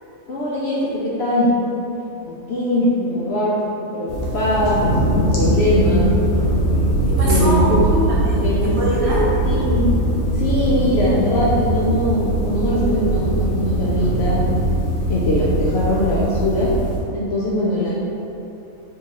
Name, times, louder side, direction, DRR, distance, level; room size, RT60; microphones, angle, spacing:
voice 1, 0.3-1.6 2.3-6.1 7.3-7.9 8.4-8.8 9.5-10.1 10.3-14.5 15.1-16.8 17.1-17.9, left 1 dB, 65° left, -6 dB, 0.7 m, -21 dB
sound 1, 4.1-17.0, right 1 dB, 80° left, 1.3 m, -21 dB
voice 2, 7.1-9.3, equal, 60° right, -6 dB, 0.8 m, -23 dB
4.4 x 2.9 x 2.9 m, 2.9 s
omnidirectional pair, 1.5 m